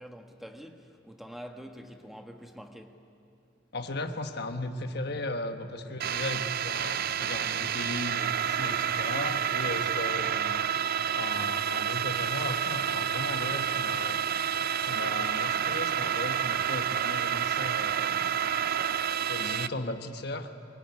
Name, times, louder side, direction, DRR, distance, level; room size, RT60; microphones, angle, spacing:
voice 1, 0.0-3.0, equal, ahead, 1.4 m, -46 dB
voice 2, 3.7-10.6 11.1-14.2 14.8-18.3 19.3-20.5, left 2 dB, 60° left, 1.3 m, -36 dB
sound 1, 6.0-19.7, right 9 dB, 55° right, 0.5 m, -29 dB
24.5 x 17.0 x 9.7 m
head